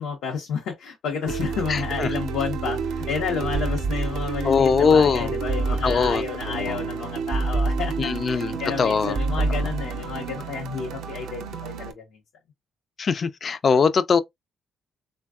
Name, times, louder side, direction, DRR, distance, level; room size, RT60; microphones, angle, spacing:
voice 1, 0.0-12.1, left 6 dB, 80° left, 0.7 m, -31 dB
sound 1, 1.3-11.9, right 6 dB, 85° right, 0.5 m, -31 dB
voice 2, 1.7-2.1 4.4-5.3 5.8-6.2 6.6-6.8 8.0-9.2 13.0-14.2, left 5 dB, 45° left, 0.3 m, -21 dB
sound 2, 3.5-4.6 5.5-6.4 7.3-8.4 9.1-10.2, right 2 dB, 30° right, 0.4 m, -27 dB
3.4 x 2.2 x 2.3 m
cardioid pair, 90°, 0 cm